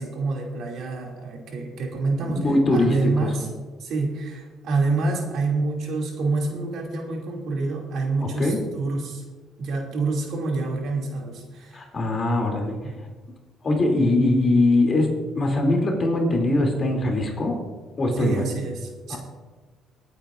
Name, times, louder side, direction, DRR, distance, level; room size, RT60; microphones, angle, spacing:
voice 1, 0.0-3.5 3.8-9.2 9.6-11.9 12.8-13.0 18.1-19.2, right 3 dB, 65° right, 0 dB, 2.6 m, -27 dB
voice 2, 2.2-3.3 8.2-8.6 11.7-12.8 13.6-15.1 15.3-17.6 18.0-18.4 19.1-19.2, left 2 dB, 35° left, 1 dB, 2.8 m, -22 dB
24.0 x 8.8 x 2.6 m, 1.3 s
cardioid pair, 105°, 0 cm